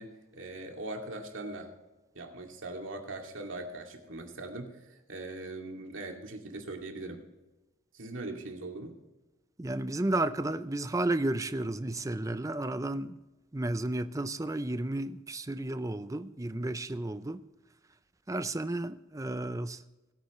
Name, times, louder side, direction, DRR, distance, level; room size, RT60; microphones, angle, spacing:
voice 1, 0.0-1.7 2.1-7.2 7.9-9.0, right 2 dB, 75° right, 2.3 m, -41 dB
voice 2, 9.6-13.2 13.5-17.4 18.3-19.8, right 2 dB, 15° right, 0.5 m, -32 dB
20.0 x 8.8 x 3.1 m
head